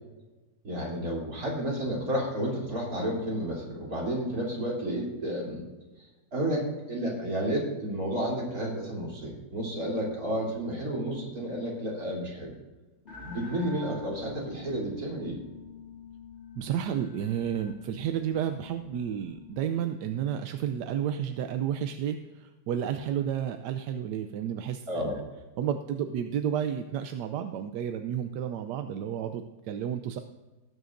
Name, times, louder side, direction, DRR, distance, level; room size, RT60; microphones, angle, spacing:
voice 1, 0.6-5.7 6.3-12.5 13.2-15.4 24.9-25.2, equal, 60° right, -4 dB, 3.8 m, -31 dB
sound 1, 13.0-19.7, left 5 dB, 40° left, 2.4 m, -46 dB
voice 2, 16.6-25.1 25.6-30.2, right 9 dB, 85° right, 7 dB, 1.2 m, -31 dB
19.0 x 9.3 x 2.6 m, 1.2 s
omnidirectional pair, 1.8 m